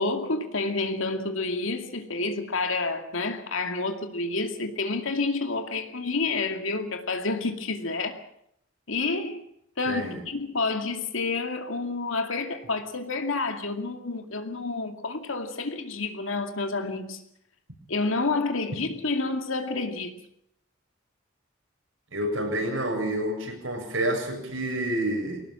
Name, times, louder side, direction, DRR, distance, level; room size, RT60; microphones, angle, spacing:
voice 1, 0.0-8.2 8.9-9.4 9.8-17.2 17.9-20.2, left 3 dB, 80° left, 2.4 m, -29 dB
voice 2, 9.9-10.2 22.1-25.4, right 1 dB, 75° right, 7.6 m, -28 dB
23.0 x 19.0 x 7.7 m
head